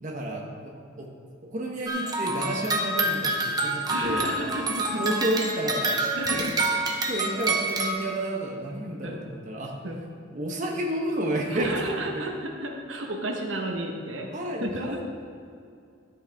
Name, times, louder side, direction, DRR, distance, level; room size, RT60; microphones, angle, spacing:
voice 1, 0.0-0.7 1.0-1.1 1.4-4.3 5.0-5.9 6.3-6.5 7.0-9.8 10.3-11.8 12.1-12.2 14.3-15.0, right 1 dB, 40° right, 0 dB, 1.0 m, -31 dB
sound 1, 1.9-7.9, right 2 dB, 20° right, 0.8 m, -27 dB
voice 2, 3.9-5.0 5.8-6.5 9.0-9.2 9.8-10.0 11.5-14.3 14.6-15.0, right 1 dB, 85° right, 1 dB, 1.2 m, -32 dB
12.5 x 8.1 x 3.5 m, 2.4 s
head